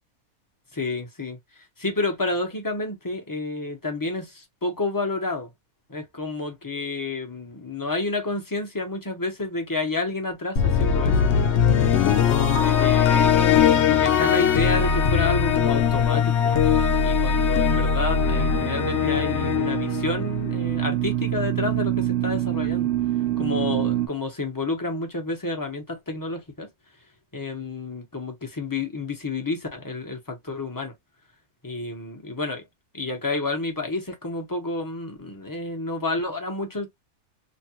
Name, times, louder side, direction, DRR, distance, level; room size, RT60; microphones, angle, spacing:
voice 1, 0.7-1.4 1.8-4.3 4.6-5.5 5.9-11.1 12.1-13.3 13.8-16.5 17.0-22.9 23.4-26.7 27.3-30.9 31.6-32.6 32.9-36.9, left 2 dB, 20° left, 0.5 m, -29 dB
sound 1, 10.6-20.7, left 7 dB, 60° left, 0.8 m, -20 dB
sound 2, 18.2-24.1, right 12 dB, 65° right, 0.6 m, -26 dB
3.1 x 2.2 x 2.8 m
omnidirectional pair, 1.6 m